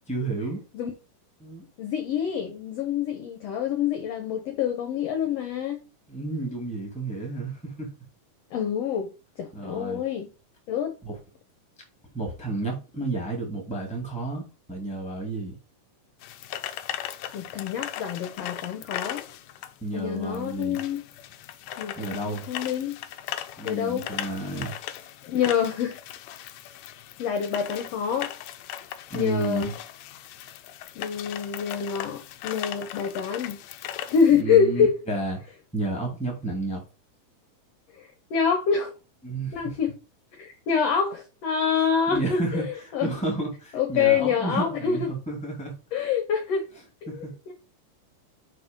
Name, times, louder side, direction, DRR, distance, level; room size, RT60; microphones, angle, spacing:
voice 1, 0.1-0.6 1.4-1.7 6.1-7.9 9.5-10.0 11.0-11.2 12.1-14.4 14.7-15.6 19.8-20.8 22.0-22.4 23.6-24.7 29.1-29.7 34.3-36.8 39.2-39.8 42.1-45.7 47.1-47.3, right 2 dB, 5° left, 1.6 m, -31 dB
voice 2, 1.8-5.8 8.5-10.3 10.7-10.9 17.3-19.2 19.9-21.0 21.8-23.0 23.6-24.1 25.2-26.0 27.2-28.3 29.1-29.7 30.9-33.6 34.1-34.9 38.0-38.9 39.5-39.9 40.4-43.1 43.7-45.1 45.9-46.7 47.1-47.5, left 7 dB, 70° left, 1.6 m, -26 dB
sound 1, 16.2-34.4, left 11 dB, 85° left, 1.5 m, -38 dB
5.2 x 4.8 x 5.2 m
omnidirectional pair, 3.8 m